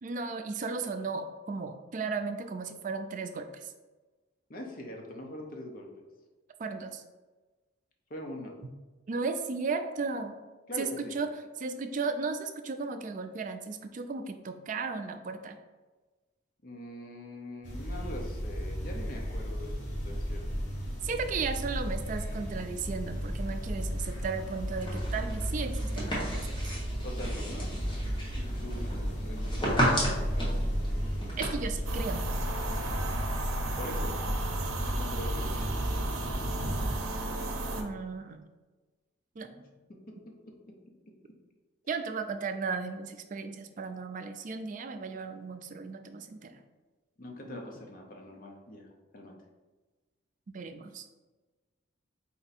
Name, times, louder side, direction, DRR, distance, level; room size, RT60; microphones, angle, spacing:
voice 1, 0.0-3.7 6.6-7.0 8.6-8.7 9.1-10.4 10.8-11.3 11.6-15.6 21.0-26.5 31.4-32.2 37.8-38.4 39.4-39.7 41.9-46.6 47.4-47.6 50.5-51.0, right 4 dB, 40° right, 7 dB, 0.3 m, -35 dB
voice 2, 4.5-6.0 8.1-8.6 10.7-11.2 16.6-20.5 27.0-27.7 28.3-30.8 33.8-34.1 34.8-36.2 36.4-36.6 40.1-40.2 40.7-40.8 47.2-48.9 49.1-49.4, left 1 dB, 45° left, 1 dB, 0.7 m, -43 dB
sound 1, 17.6-36.9, equal, 60° left, 1.1 m, -34 dB
sound 2, 24.8-31.5, equal, 25° left, 1.0 m, -34 dB
sound 3, 31.9-37.8, right 2 dB, 85° right, 0.6 m, -35 dB
4.4 x 2.6 x 4.0 m, 1.2 s
head